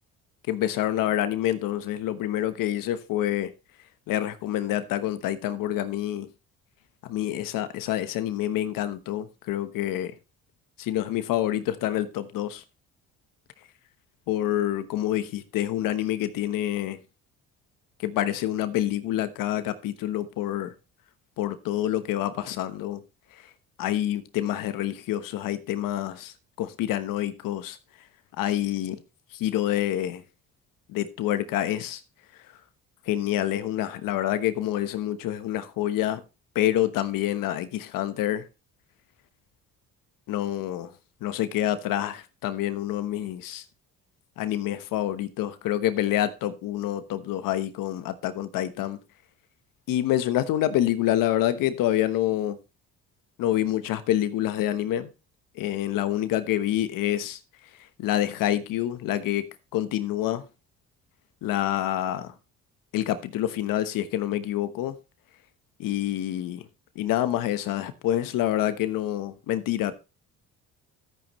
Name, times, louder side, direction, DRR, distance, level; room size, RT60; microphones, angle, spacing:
voice 1, 0.5-3.5 4.1-6.3 7.0-10.1 10.8-12.6 14.3-17.0 18.0-20.7 21.4-23.0 23.3-23.4 23.8-27.8 28.4-29.0 29.3-30.2 30.9-32.0 33.1-36.2 36.5-38.5 40.3-40.9 41.2-43.6 44.4-49.0 49.9-52.6 53.4-55.1 55.5-57.4 58.0-59.5 59.7-60.4 61.4-62.3 62.9-65.0 65.8-66.6 66.9-69.9, left 12 dB, 80° left, 1.2 m, -27 dB
12.0 x 9.0 x 3.1 m
cardioid pair, 90°, 33 cm